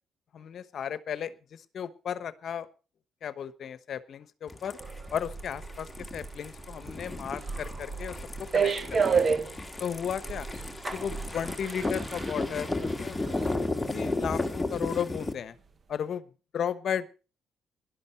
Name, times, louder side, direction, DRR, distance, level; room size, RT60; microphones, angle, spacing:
voice 1, 0.3-2.7 3.2-4.8 5.1-5.9 6.1-9.3 9.8-10.5 10.9-13.6 13.9-15.5 15.9-16.2 16.5-17.1, left 8 dB, 60° left, 14 dB, 1.1 m, -35 dB
sound 1, 4.5-15.3, left 2 dB, 10° left, 1.9 m, -34 dB
sound 2, 4.8-13.9 14.2-14.4, right 5 dB, 40° right, 1.1 m, -32 dB
17.5 x 11.5 x 4.4 m, 0.34 s
cardioid pair, 90°, 0 cm